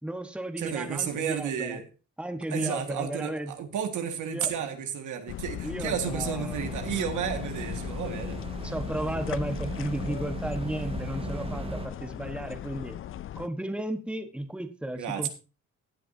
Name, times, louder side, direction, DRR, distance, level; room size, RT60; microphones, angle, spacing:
voice 1, 0.0-1.8 2.2-3.5 4.3-4.5 5.6-6.6 8.6-13.0 13.3-15.3, right 1 dB, 5° right, 7 dB, 1.3 m, -34 dB
voice 2, 0.6-1.9 2.5-8.4 14.9-15.3, right 8 dB, 80° right, 5 dB, 1.8 m, -32 dB
sound 1, 5.3-13.5, left 12 dB, 45° left, 0.4 m, -37 dB
sound 2, 6.5-11.9, right 3 dB, 20° right, 0.8 m, -38 dB
16.5 x 8.7 x 2.7 m, 0.32 s
cardioid pair, 90°, 30 cm